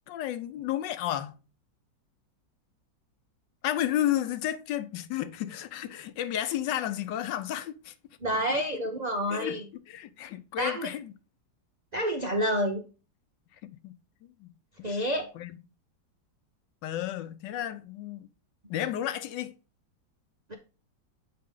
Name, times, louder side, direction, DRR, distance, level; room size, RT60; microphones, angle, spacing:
voice 1, 0.1-1.4 3.6-7.9 8.5-8.6 9.3-11.1 13.6-13.9 14.4-14.5 14.8-14.9 15.3-15.6 16.8-18.3 18.7-19.5, left 12 dB, 80° left, 1.3 m, -32 dB
voice 2, 8.2-9.6 10.6-10.9 11.9-12.8 14.8-15.3 20.5-20.6, equal, 80° right, 0.3 m, -28 dB
7.7 x 4.7 x 3.7 m
omnidirectional pair, 2.0 m